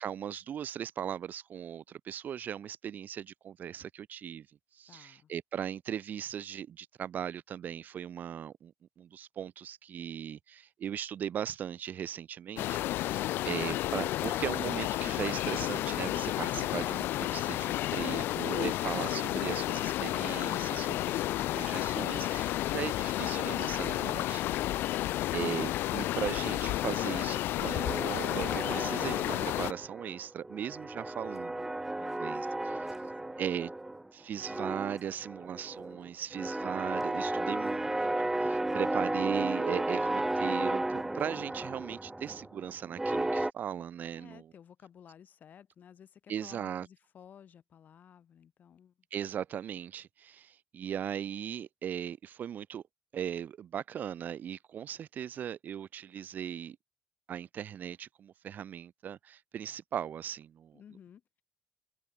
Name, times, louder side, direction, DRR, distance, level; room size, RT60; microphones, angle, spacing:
voice 1, 0.0-4.5 4.7-32.8 33.4-33.7 34.1-44.5 46.3-46.9 49.1-52.8 53.1-56.8 57.3-60.8, right 9 dB, 55° right, 0.9 m, -38 dB
voice 2, 4.9-5.3 32.0-32.9 33.2-33.4 38.7-39.2 44.1-48.9 60.7-61.4, left 8 dB, 50° left, 5.6 m, -56 dB
sound 1, 12.6-29.7, left 15 dB, 80° left, 0.4 m, -31 dB
sound 2, 27.6-30.2 30.4-34.1 34.4-43.5, right 2 dB, 10° right, 1.2 m, -34 dB
cardioid pair, 105°, 4 cm